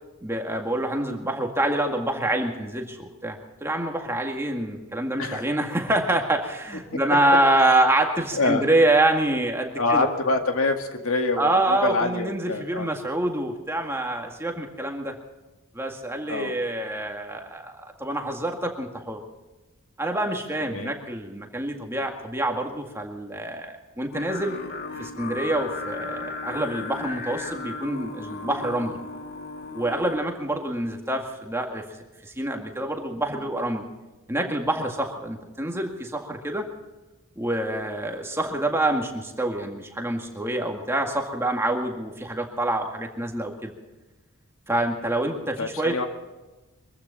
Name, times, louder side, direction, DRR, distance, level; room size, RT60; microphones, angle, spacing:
voice 1, 0.2-10.1 11.4-15.2 15.7-19.2 20.0-24.6 25.0-29.0 29.7-31.9 32.2-33.8 34.3-36.7 37.4-43.7 44.7-46.0, right 1 dB, 10° right, 2 dB, 2.0 m, -26 dB
voice 2, 8.3-8.6 9.7-12.9 16.3-16.5 20.7-20.9 45.6-46.1, left 3 dB, 75° left, 5 dB, 2.0 m, -25 dB
Singing, 24.1-30.2, left 3 dB, 50° left, 2.2 m, -35 dB
23.0 x 15.0 x 4.2 m, 1.1 s
head